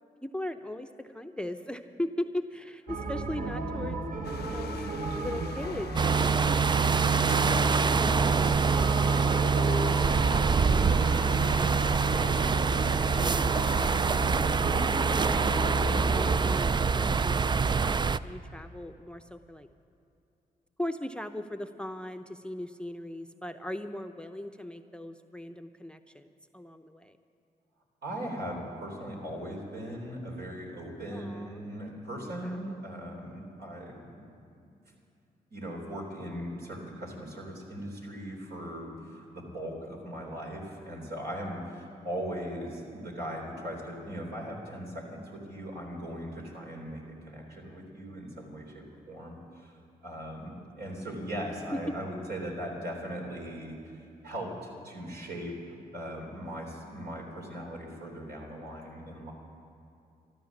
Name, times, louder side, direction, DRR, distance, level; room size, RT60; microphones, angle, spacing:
voice 1, 0.2-4.0 4.4-4.8 5.1-10.0 10.3-13.5 14.0-14.4 14.7-19.7 20.8-27.2 31.1-31.6 32.2-32.6 51.7-51.9, left 1 dB, 5° left, 8 dB, 0.7 m, -39 dB
sound 1, 2.9-16.4, right 2 dB, 55° right, 1.3 m, -35 dB
sound 2, 4.2-14.2, left 10 dB, 80° left, 0.5 m, -46 dB
sound 3, 6.0-18.2, right 5 dB, 25° right, 0.3 m, -25 dB
voice 2, 28.0-34.3 35.5-49.7 50.0-53.8 54.2-59.3, equal, 75° right, -1 dB, 3.5 m, -39 dB
13.5 x 12.5 x 7.2 m, 2.7 s
cardioid pair, 55°, 17 cm